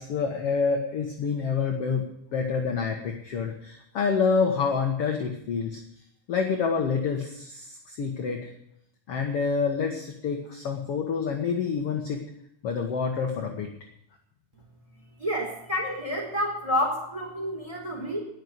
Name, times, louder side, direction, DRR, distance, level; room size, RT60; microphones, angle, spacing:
voice 1, 0.0-2.0 2.3-5.8 6.3-8.5 9.1-12.2 12.6-13.7, left 5 dB, 55° left, 2 dB, 2.0 m, -27 dB
voice 2, 15.2-18.2, equal, 10° right, -1 dB, 4.5 m, -29 dB
20.0 x 6.7 x 8.0 m, 0.76 s
omnidirectional pair, 3.8 m